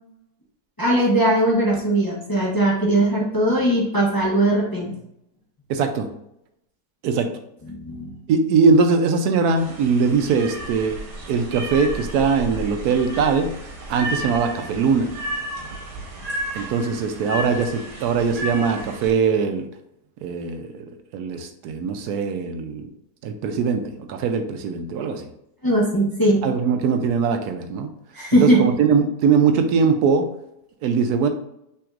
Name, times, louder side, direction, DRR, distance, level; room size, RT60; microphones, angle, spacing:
voice 1, 0.8-4.9 7.7-8.1 25.6-26.4 28.1-28.6, right 1 dB, 15° left, -4 dB, 0.8 m, -19 dB
voice 2, 5.7-6.1 7.0-7.3 8.3-11.0 11.3-13.5 13.9-15.1 16.5-19.7 20.2-22.9 23.2-25.3 26.4-27.9 28.4-30.3 30.8-31.3, right 5 dB, 75° right, 6 dB, 1.1 m, -21 dB
sound 1, 9.6-19.1, right 1 dB, 60° right, 1.5 m, -33 dB
5.9 x 3.5 x 2.4 m, 0.79 s
omnidirectional pair, 1.7 m